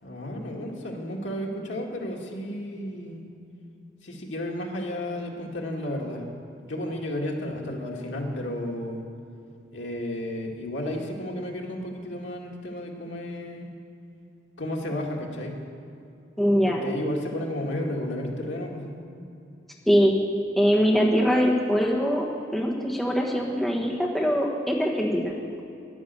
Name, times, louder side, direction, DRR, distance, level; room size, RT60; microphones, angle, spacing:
voice 1, 0.0-3.3 4.0-6.2 6.6-9.0 9.7-13.7 14.6-15.6 16.6-18.9, left 1 dB, 80° left, -1 dB, 2.0 m, -32 dB
voice 2, 16.4-16.9 19.9-20.1 20.6-22.3 22.5-25.4, equal, ahead, -2 dB, 1.3 m, -22 dB
11.0 x 10.5 x 8.2 m, 2.6 s
head